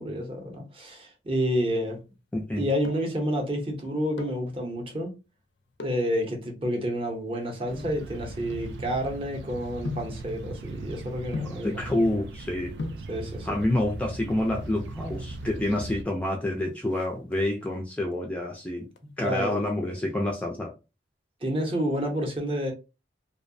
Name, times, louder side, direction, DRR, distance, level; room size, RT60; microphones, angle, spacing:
voice 1, 0.0-2.0 2.6-5.1 5.8-11.9 13.1-13.6 19.2-19.6 21.4-22.7, equal, 30° right, 0.6 m, -29 dB
voice 2, 2.3-2.6 11.6-12.7 13.4-18.9 19.2-20.7, left 1 dB, 10° left, 0.3 m, -28 dB
sound 1, 2.4-3.2 4.0-4.5 5.7-6.1 6.8-9.2 9.9-10.2 11.3-11.7 12.5-12.6 12.8-13.1 14.3-14.8 15.1-15.2 15.4-15.6 15.9-16.3 16.6-17.7 18.1-18.5 18.9-20.1 20.3-20.4, left 4 dB, 80° left, 0.4 m, -39 dB
sound 2, 7.7-16.0, right 2 dB, 75° right, 0.3 m, -39 dB
2.6 x 2.0 x 2.5 m
head